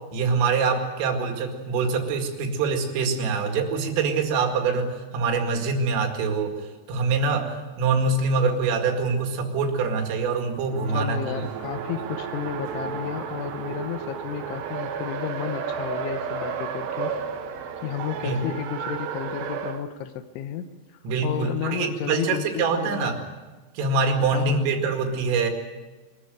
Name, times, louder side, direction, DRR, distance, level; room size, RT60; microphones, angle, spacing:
voice 1, 0.1-11.2 18.2-18.5 21.0-23.2 23.8-25.5, right 4 dB, 85° right, 4 dB, 4.7 m, -24 dB
Race car auto racing, 10.6-19.8, right 6 dB, 65° right, 3.4 m, -32 dB
voice 2, 10.9-17.1 17.8-20.7 21.2-23.3 24.3-24.7, left 10 dB, 75° left, 9 dB, 3.3 m, -32 dB
23.0 x 14.0 x 9.3 m, 1.3 s
omnidirectional pair, 5.7 m